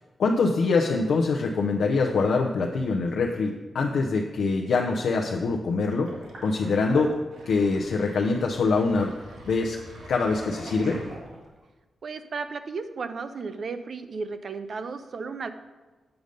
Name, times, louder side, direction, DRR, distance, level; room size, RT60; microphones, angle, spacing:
voice 1, 0.2-6.1 6.4-7.1 7.5-9.1 9.5-9.8 10.1-11.0, left 4 dB, 75° left, 0 dB, 0.6 m, -24 dB
Sink (filling or washing), 6.0-11.6, right 1 dB, 90° right, 1.9 m, -42 dB
voice 2, 12.0-15.5, right 4 dB, 50° right, 10 dB, 0.5 m, -34 dB
7.9 x 5.2 x 5.1 m, 1.2 s
wide cardioid pair, 160°, 0 cm